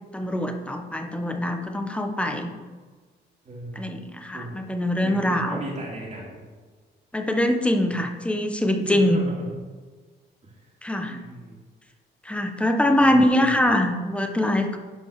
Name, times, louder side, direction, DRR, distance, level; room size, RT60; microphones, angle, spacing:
voice 1, 0.1-2.5 3.7-5.6 7.1-9.2 10.8-11.2 12.2-14.8, left 1 dB, 5° left, 5 dB, 1.3 m, -23 dB
voice 2, 3.4-3.9 4.3-4.6 5.0-6.4 8.8-9.6 10.4-10.7 11.1-11.6 12.9-13.6, right 1 dB, 35° right, -3 dB, 3.0 m, -36 dB
11.0 x 5.2 x 6.6 m, 1.4 s
cardioid pair, 90°, 20 cm